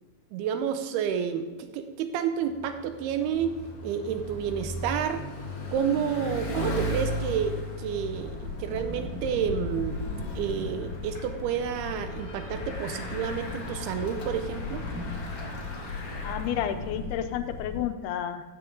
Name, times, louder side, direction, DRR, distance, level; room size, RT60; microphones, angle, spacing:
voice 1, 0.3-3.6 3.8-5.2 5.7-10.0 10.4-14.8, right 8 dB, 85° right, 8 dB, 2.7 m, -30 dB
Bicycle, 2.4-17.1, equal, 45° left, 1.6 m, -37 dB
sound 1, 8.1-17.8, left 3 dB, 40° right, 4.7 m, -37 dB
voice 2, 16.2-18.4, left 10 dB, 90° left, 8 dB, 2.7 m, -31 dB
14.5 x 7.7 x 3.7 m, 1.3 s
omnidirectional pair, 4.4 m